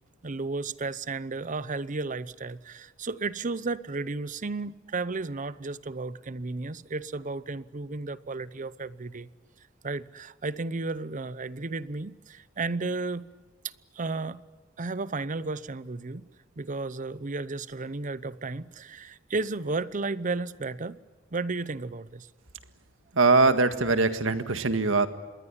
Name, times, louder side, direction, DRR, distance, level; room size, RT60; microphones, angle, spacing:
voice 1, 0.2-9.3 9.8-13.3 13.9-14.4 14.8-16.2 16.6-21.0 21.3-22.3, right 3 dB, 40° right, 17 dB, 0.8 m, -33 dB
voice 2, 23.1-25.1, right 3 dB, 85° right, 10 dB, 1.8 m, -22 dB
27.0 x 21.5 x 10.0 m, 1.3 s
head